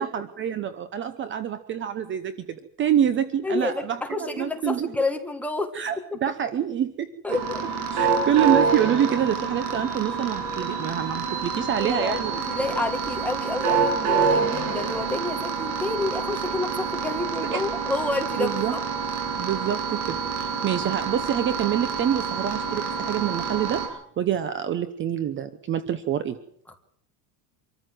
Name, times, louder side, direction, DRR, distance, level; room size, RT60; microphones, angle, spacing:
voice 1, 0.0-4.9 5.7-7.1 7.9-12.8 17.4-17.6 18.4-18.7 19.4-26.4, right 9 dB, 25° right, 12 dB, 0.9 m, -26 dB
voice 2, 3.4-5.7 7.2-7.6 11.8-18.8 26.7-26.8, left 2 dB, 5° left, 4 dB, 1.7 m, -29 dB
sound 1, 7.3-23.9, right 5 dB, 70° right, 7.8 m, -27 dB
25.0 x 14.0 x 7.8 m, 0.71 s
cardioid pair, 165°, 43 cm